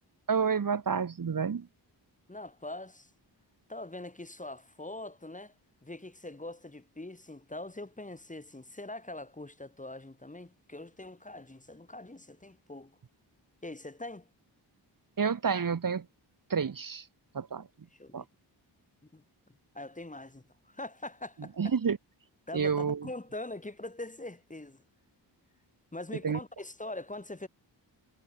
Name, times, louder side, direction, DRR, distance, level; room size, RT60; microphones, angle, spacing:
voice 1, 0.3-1.7 15.2-16.0 16.5-17.1 17.3-17.7 18.1-18.2 21.6-22.0 22.5-23.1 26.2-26.4, right 6 dB, 45° right, 1.5 m, -29 dB
voice 2, 2.3-3.1 3.7-5.5 5.8-13.0 13.6-14.3 17.9-18.3 19.1-19.2 19.7-21.7 22.5-24.8 25.9-27.5, left 2 dB, 15° left, 2.2 m, -43 dB
cardioid pair, 60°, 45 cm